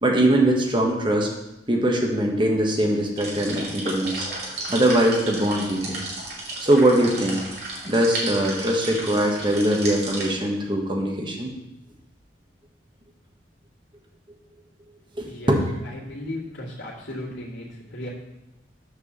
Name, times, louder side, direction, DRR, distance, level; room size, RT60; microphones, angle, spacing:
voice 1, 0.0-1.3 1.7-4.3 4.7-6.0 6.6-7.4 7.8-11.5 15.2-15.6, right 1 dB, 25° right, 0 dB, 1.3 m, -21 dB
sound 1, 3.2-10.3, right 2 dB, 55° right, 2.5 m, -33 dB
voice 2, 15.2-18.1, left 1 dB, 75° left, -10 dB, 2.3 m, -36 dB
8.2 x 4.6 x 6.8 m, 0.93 s
head